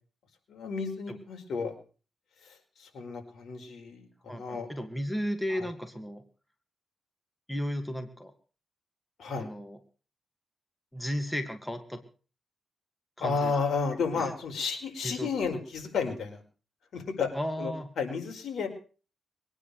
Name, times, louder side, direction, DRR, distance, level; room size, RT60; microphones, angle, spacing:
voice 1, 0.5-1.7 2.4-4.7 5.5-5.7 9.2-9.5 13.2-16.4 16.9-17.3 17.6-18.7, left 5 dB, 75° left, 4 dB, 4.9 m, -32 dB
voice 2, 4.3-6.2 7.5-8.3 9.4-9.8 10.9-12.0 13.2-13.5 14.2-14.3 15.0-15.3 17.3-17.9, equal, 5° left, 7 dB, 2.3 m, -34 dB
22.5 x 9.9 x 6.6 m, 0.39 s
cardioid pair, 95°, 0 cm